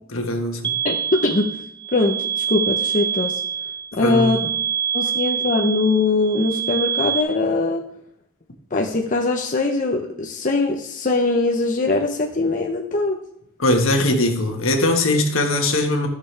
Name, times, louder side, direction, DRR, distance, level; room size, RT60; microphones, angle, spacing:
voice 1, 0.1-0.7 4.0-4.3 13.6-16.1, left 1 dB, 70° left, 3 dB, 1.5 m, -20 dB
sound 1, 0.6-7.2, right 8 dB, 20° right, 0.6 m, -26 dB
voice 2, 0.8-1.6 1.9-3.4 4.0-4.5 4.9-7.8 8.7-13.2, left 2 dB, 40° left, 1 dB, 0.9 m, -21 dB
15.0 x 6.8 x 3.4 m, 0.71 s
head